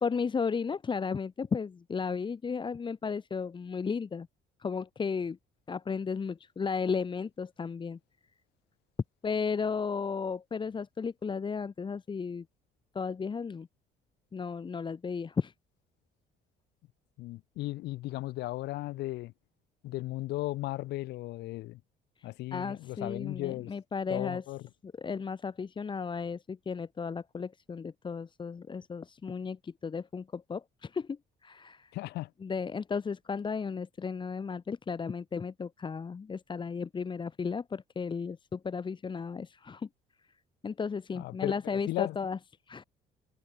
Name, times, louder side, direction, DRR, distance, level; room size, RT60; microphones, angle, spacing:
voice 1, 0.0-4.3 4.6-5.4 5.7-8.0 9.2-12.4 12.9-13.7 14.3-15.5 22.5-24.4 24.8-31.9 32.4-39.9 40.6-42.4 42.7-42.8, left 5 dB, 30° left, 1.4 m, -34 dB
voice 2, 17.2-19.3 19.8-21.8 22.2-23.7 24.1-24.6 31.9-32.3 41.1-42.2, left 18 dB, 85° left, 4.4 m, -36 dB
cardioid pair, 110°, 17 cm